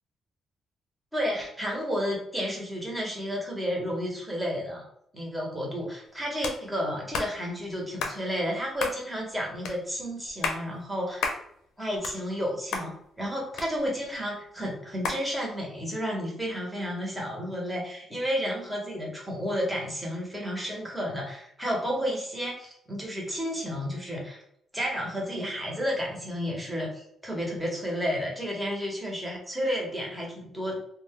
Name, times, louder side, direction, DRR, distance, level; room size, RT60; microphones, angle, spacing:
voice 1, 1.1-4.8 5.1-11.3 11.8-24.4 24.7-30.8, equal, 5° right, -2 dB, 1.0 m, -31 dB
sound 1, 6.4-6.6 7.1-7.3 8.0-8.2 8.8-9.0 9.7-9.8 10.3-10.6 11.2-11.4 11.8-12.5 12.7-12.9 13.6-14.1 15.0-15.2, left 4 dB, 85° left, 0.5 m, -31 dB
2.4 x 2.2 x 3.6 m, 0.71 s
cardioid pair, 90°, 0 cm